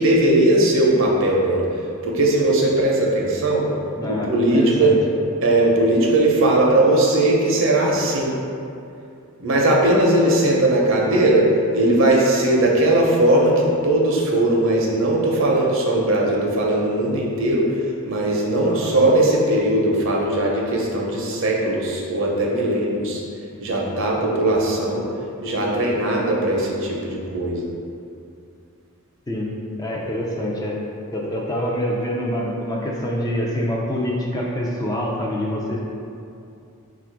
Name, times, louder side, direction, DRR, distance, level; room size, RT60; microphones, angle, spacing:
voice 1, 0.0-1.7 2.0-3.7 4.1-4.9 5.4-8.3 9.4-11.4 11.7-17.7 18.0-23.2 23.6-25.0 25.4-27.6, right 1 dB, 60° right, -2 dB, 0.7 m, -19 dB
voice 2, 4.0-5.0 18.6-18.9 29.3-29.5 29.8-30.8 31.1-35.8, equal, 15° left, -3 dB, 0.4 m, -26 dB
4.4 x 2.4 x 4.5 m, 2.5 s
head